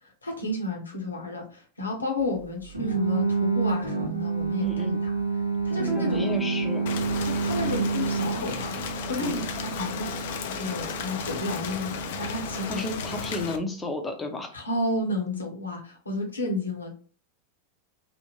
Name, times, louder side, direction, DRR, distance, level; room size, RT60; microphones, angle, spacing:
voice 1, 0.0-5.1 5.6-6.3 7.2-8.8 9.1-10.1 10.4-12.8 14.5-16.9, left 1 dB, 75° left, 2 dB, 0.9 m, -32 dB
sound 1, 2.7-13.6, right 4 dB, 90° right, 0.7 m, -30 dB
voice 2, 4.6-5.0 6.0-7.0 9.2-9.5 12.7-14.6, left 2 dB, 10° left, 3 dB, 0.7 m, -32 dB
sound 2, 5.7-12.3, right 1 dB, 15° right, 0.9 m, -38 dB
Rain, 6.9-13.6, left 7 dB, 55° left, 0.4 m, -34 dB
3.5 x 2.1 x 3.0 m, 0.39 s
figure-of-eight pair, 90°, 0 cm